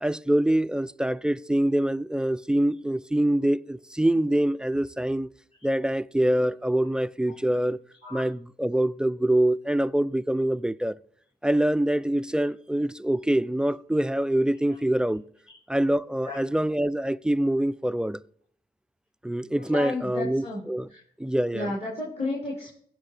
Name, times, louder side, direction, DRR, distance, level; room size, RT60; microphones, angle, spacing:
voice 1, 0.0-5.3 5.6-7.8 8.1-11.0 11.4-15.2 15.7-18.2 19.2-20.9 21.2-21.7, right 1 dB, 5° right, 0.3 m, -25 dB
voice 2, 19.5-20.6 20.9-21.0 21.5-22.8, left 2 dB, 40° left, 4.7 m, -33 dB
16.5 x 6.0 x 3.3 m
supercardioid pair, 50°, 17 cm